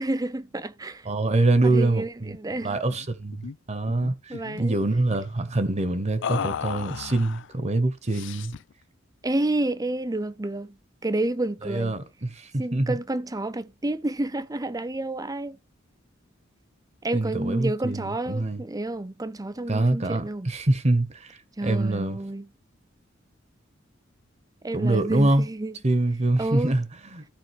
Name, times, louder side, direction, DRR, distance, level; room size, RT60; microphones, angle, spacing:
voice 1, 0.0-1.1 1.6-2.8 4.3-4.8 9.2-10.8 11.0-12.0 12.6-15.6 17.0-20.5 21.6-22.5 24.6-25.7 26.4-26.8, right 2 dB, 20° right, 0.7 m, -29 dB
voice 2, 1.0-8.5 11.6-13.0 17.1-18.6 19.7-22.2 24.7-25.5 25.8-26.8 27.1-27.2, right 2 dB, 35° right, 1.1 m, -25 dB
sound 1, 2.9-3.1 3.3-3.6 3.9-4.6 6.2-7.5 8.1-8.7, left 7 dB, 65° left, 0.4 m, -34 dB
15.0 x 5.1 x 3.2 m
head